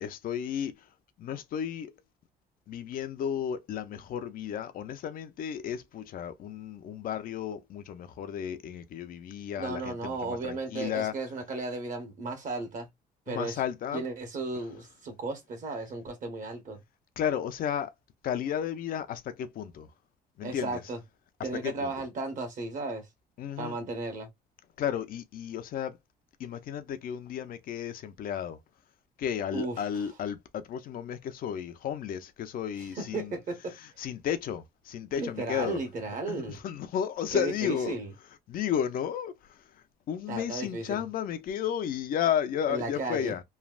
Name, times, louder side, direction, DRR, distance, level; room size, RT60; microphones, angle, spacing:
voice 1, 0.0-0.7 1.2-1.9 2.7-11.1 13.3-14.0 17.2-17.9 18.2-19.9 20.4-20.8 21.4-21.9 23.4-23.7 24.8-25.9 26.4-28.6 29.2-33.3 34.0-35.8 36.3-38.0 38.5-39.3 40.1-43.4, left 9 dB, 55° left, 0.6 m, -33 dB
voice 2, 9.6-12.9 13.3-13.6 13.9-16.8 20.4-21.0 21.4-23.1 23.6-24.3 29.5-29.8 32.8-33.7 35.2-36.6 37.3-38.1 40.3-41.0 42.7-43.4, right 3 dB, 50° right, 1.4 m, -35 dB
3.2 x 2.3 x 2.4 m
cardioid pair, 110°, 17 cm